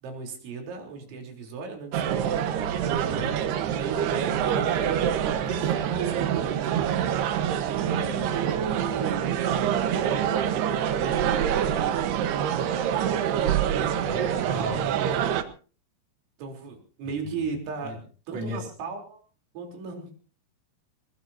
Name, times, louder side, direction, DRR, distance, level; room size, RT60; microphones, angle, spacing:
voice 1, 0.0-2.6 3.7-5.0 5.2-6.9 7.3-7.4 7.8-11.0 11.3-11.9 16.4-18.0 18.3-19.2 19.5-20.1, right 4 dB, 85° right, 3 dB, 6.2 m, -37 dB
sound 1, 1.9-15.4, right 9 dB, 70° right, 3.1 m, -26 dB
voice 2, 2.8-3.3 13.8-15.2 17.2-17.9 18.3-18.7, right 1 dB, 40° right, 0 dB, 4.5 m, -36 dB
21.5 x 21.5 x 2.8 m, 0.37 s
omnidirectional pair, 5.2 m